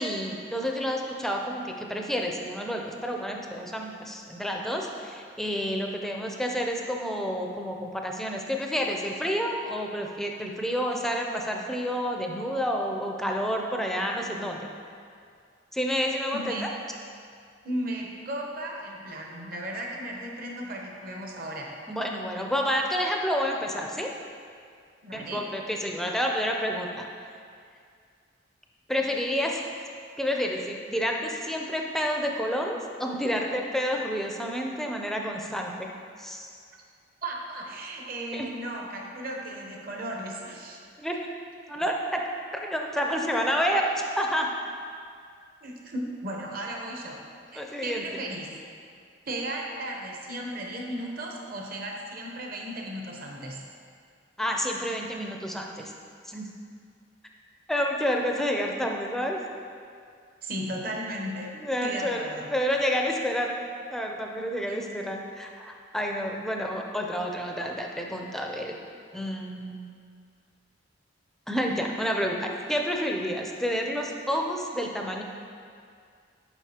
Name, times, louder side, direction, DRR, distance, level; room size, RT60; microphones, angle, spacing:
voice 1, 0.0-14.6 15.7-16.5 21.9-24.1 25.1-27.0 28.9-29.6 30.2-35.9 36.2-36.5 38.3-38.5 41.0-41.2 41.7-42.2 42.6-44.5 47.6-48.0 54.4-55.9 56.2-56.5 57.7-59.4 61.5-63.6 63.9-68.8 69.1-69.9 71.5-75.2, equal, ahead, 1 dB, 0.4 m, -29 dB
voice 2, 16.3-16.7 17.6-21.7 25.0-25.4 37.2-40.8 45.6-47.2 47.5-48.6 49.2-53.6 60.4-62.5 64.7-64.8, right 1 dB, 50° right, 0 dB, 0.8 m, -35 dB
7.2 x 5.4 x 2.8 m, 2.2 s
head